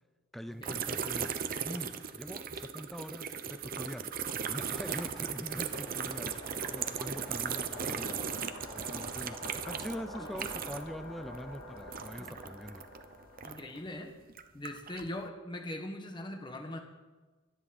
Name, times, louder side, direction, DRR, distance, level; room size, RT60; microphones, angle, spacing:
voice 1, 0.3-1.3 1.6-4.1 4.5-12.9, equal, ahead, 11 dB, 0.5 m, -43 dB
sound 1, 0.6-11.0 11.3-13.8 14.3-15.1, right 7 dB, 45° right, 0.8 m, -37 dB
sound 2, 3.4-14.0, left 1 dB, 90° left, 2.5 m, -48 dB
sound 3, 4.1-10.9, right 2 dB, 25° right, 2.3 m, -51 dB
voice 2, 13.4-14.1 14.5-16.8, left 1 dB, 20° left, 4 dB, 1.3 m, -41 dB
24.5 x 10.0 x 4.3 m, 1.3 s
head